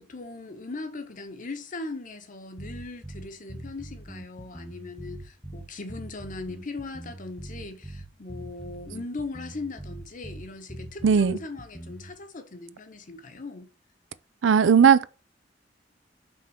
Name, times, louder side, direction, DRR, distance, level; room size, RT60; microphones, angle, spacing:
voice 1, 0.0-13.7, left 3 dB, 45° left, 1.1 m, -39 dB
sound 1, 2.6-12.2, right 1 dB, 5° left, 0.6 m, -42 dB
voice 2, 11.0-11.4 14.4-15.1, right 7 dB, 75° right, 0.4 m, -17 dB
5.8 x 3.7 x 5.8 m
head